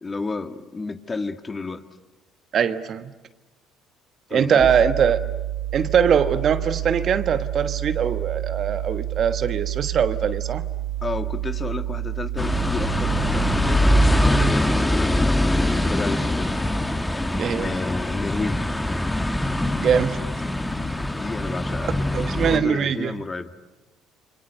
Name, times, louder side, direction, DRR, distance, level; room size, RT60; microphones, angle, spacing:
voice 1, 0.0-1.8 4.3-4.7 11.0-16.5 17.5-18.7 21.2-23.5, left 3 dB, 30° left, 9 dB, 1.7 m, -31 dB
voice 2, 2.5-3.1 4.3-5.2 5.7-10.6 17.3-17.7 19.8-20.2 21.8-23.1, right 7 dB, 55° right, 11 dB, 1.3 m, -22 dB
sound 1, 4.6-14.6, right 14 dB, 70° right, 1.5 m, -29 dB
sound 2, 12.4-22.6, left 1 dB, 10° left, 1.7 m, -23 dB
29.0 x 24.5 x 6.9 m, 1.1 s
hypercardioid pair, 65°, 0 cm